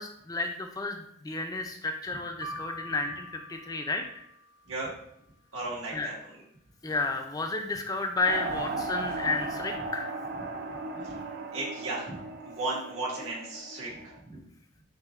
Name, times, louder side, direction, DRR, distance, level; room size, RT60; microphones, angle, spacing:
voice 1, 0.0-4.0 5.9-6.1 6.8-10.1, left 3 dB, 20° left, 4 dB, 0.3 m, -32 dB
sound 1, 2.4-4.6, equal, 70° left, 0.6 m, -44 dB
voice 2, 5.5-6.1 10.9-11.2 11.5-14.1, right 2 dB, 90° right, -5 dB, 1.7 m, -35 dB
sound 2, 8.3-14.2, right 3 dB, 50° right, 0.4 m, -36 dB
7.5 x 2.5 x 2.4 m, 0.76 s
head